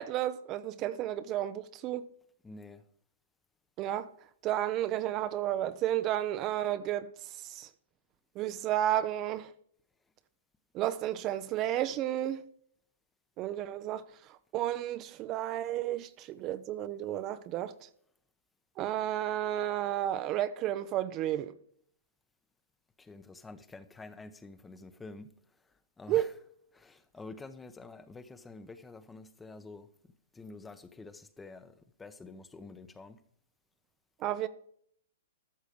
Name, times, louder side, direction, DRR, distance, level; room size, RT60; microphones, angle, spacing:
voice 1, 0.0-2.1 3.8-4.1 4.4-7.7 8.4-9.5 10.7-12.4 13.4-14.0 14.3-17.9 18.8-21.5 26.1-26.3 34.2-34.5, right 12 dB, 35° right, 0.5 m, -32 dB
voice 2, 2.4-2.8 23.0-25.3 25.6-26.3 26.7-29.9 30.3-33.2, left 3 dB, 10° left, 0.8 m, -48 dB
13.5 x 6.3 x 5.1 m
hypercardioid pair, 130°, 0 cm